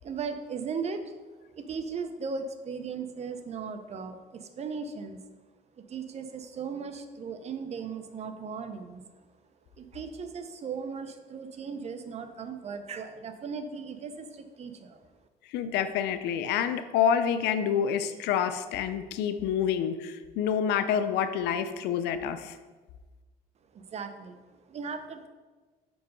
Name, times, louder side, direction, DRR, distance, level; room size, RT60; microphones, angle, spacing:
voice 1, 0.0-1.1 1.5-5.2 5.8-9.0 9.8-15.0 23.7-25.3, right 5 dB, 40° right, 8 dB, 0.7 m, -37 dB
voice 2, 15.5-22.6, left 8 dB, 85° left, 10 dB, 0.5 m, -28 dB
5.2 x 4.6 x 5.2 m, 1.3 s
cardioid pair, 110°, 17 cm